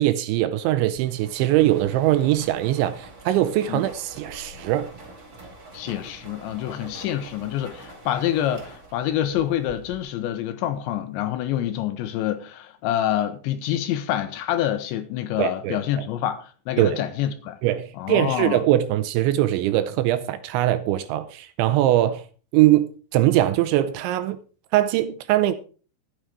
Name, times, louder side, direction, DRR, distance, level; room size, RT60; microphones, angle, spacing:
voice 1, 0.0-4.9 15.4-16.0 16.8-17.0 17.6-22.2 22.5-24.4 24.7-25.5, right 14 dB, 80° right, 2.9 m, -21 dB
sound 1, 0.9-10.3, right 2 dB, 40° right, 1.3 m, -45 dB
voice 2, 5.7-17.6 17.9-18.6, left 11 dB, 75° left, 3.0 m, -27 dB
12.5 x 9.2 x 4.8 m
omnidirectional pair, 5.7 m